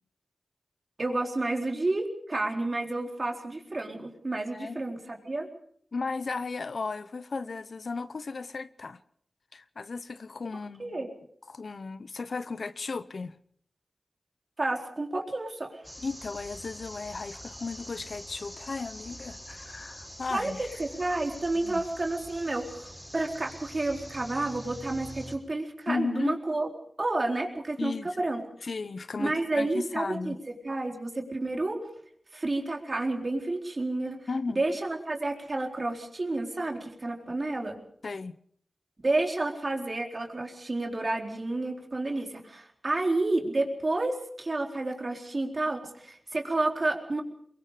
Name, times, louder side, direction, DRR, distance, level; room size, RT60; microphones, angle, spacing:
voice 1, 1.0-5.5 10.8-11.1 14.6-15.8 20.3-20.5 20.8-26.7 27.0-28.4 29.2-31.8 32.3-34.2 34.5-37.8 39.0-47.2, right 2 dB, 50° right, 4.1 m, -30 dB
voice 2, 4.5-4.8 5.9-9.0 9.5-11.1 11.5-13.4 16.0-20.7 21.6-21.8 25.9-26.3 27.8-28.2 28.6-30.4 34.3-34.6 38.0-38.4, left 4 dB, 75° left, 0.8 m, -35 dB
sound 1, 15.8-25.4, equal, 5° left, 5.3 m, -45 dB
23.0 x 22.5 x 5.1 m
cardioid pair, 45°, 0 cm